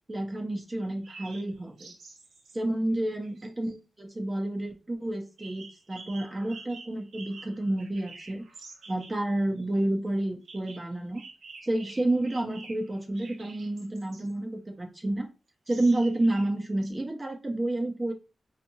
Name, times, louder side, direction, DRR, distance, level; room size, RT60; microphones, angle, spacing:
voice 1, 0.1-1.9 2.5-8.4 8.9-11.2 11.6-15.3 15.7-18.1, right 1 dB, 30° right, 2 dB, 0.7 m, -30 dB
sound 1, 0.8-2.6 3.1-3.7 5.4-9.2 9.6-9.7 10.5-14.3 15.7-16.9, right 3 dB, 85° right, 0.6 m, -49 dB
2.7 x 2.4 x 2.7 m, 0.30 s
cardioid pair, 55°, 0 cm